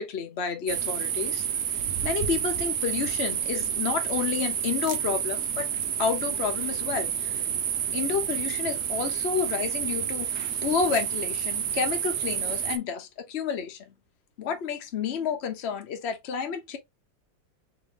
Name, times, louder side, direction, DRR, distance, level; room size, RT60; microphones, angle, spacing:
voice 1, 0.0-1.4 2.0-5.7 6.0-7.4 7.9-13.9 14.4-16.8, left 6 dB, 45° left, 0.9 m, -30 dB
sound 1, 0.7-12.8, right 9 dB, 65° right, 1.2 m, -29 dB
3.9 x 3.7 x 3.2 m
omnidirectional pair, 2.1 m